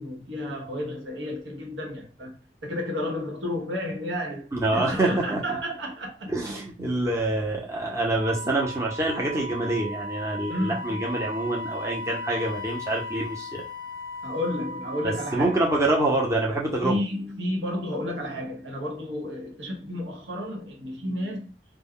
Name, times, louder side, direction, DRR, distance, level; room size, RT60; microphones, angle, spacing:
voice 1, 0.0-2.4 2.6-6.3 10.5-11.0 14.2-15.6 16.8-21.6, left 1 dB, 90° right, 1.0 m, -31 dB
voice 2, 4.5-5.4 6.3-13.6 15.0-17.0, right 2 dB, 15° right, 0.7 m, -26 dB
Wind instrument woodwind instrument, 8.1-16.4, left 1 dB, 45° right, 0.3 m, -37 dB
2.2 x 2.1 x 3.6 m
head